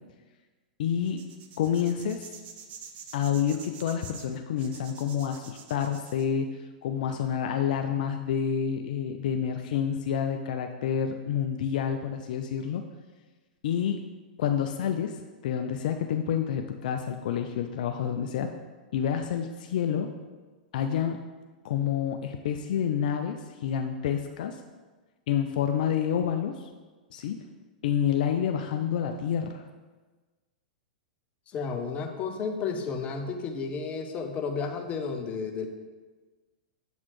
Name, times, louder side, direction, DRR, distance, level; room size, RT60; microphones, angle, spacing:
voice 1, 0.8-1.2 1.6-2.3 3.1-6.5 6.8-12.8 13.6-14.0 14.4-15.2 15.4-18.5 18.9-20.1 20.7-21.2 21.6-24.6 25.3-26.7 27.1-27.4 27.8-29.6, left 8 dB, 65° left, 5 dB, 0.4 m, -28 dB
sound 1, 1.0-6.3, right 7 dB, 30° right, 0.5 m, -47 dB
voice 2, 31.5-35.7, left 5 dB, 30° left, 4 dB, 0.7 m, -32 dB
7.6 x 4.0 x 3.1 m, 1.3 s
hypercardioid pair, 120°, 5 cm